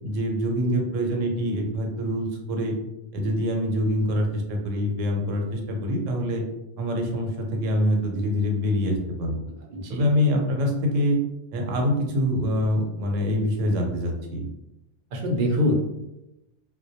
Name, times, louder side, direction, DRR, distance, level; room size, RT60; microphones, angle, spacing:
voice 1, 0.0-2.8 3.1-6.4 6.8-9.5 9.9-11.2 11.5-14.4, equal, 85° right, 1 dB, 0.9 m, -25 dB
voice 2, 9.6-10.1 15.1-15.7, left 1 dB, 60° right, 1 dB, 0.5 m, -25 dB
2.1 x 2.1 x 2.6 m, 0.92 s
omnidirectional pair, 1.3 m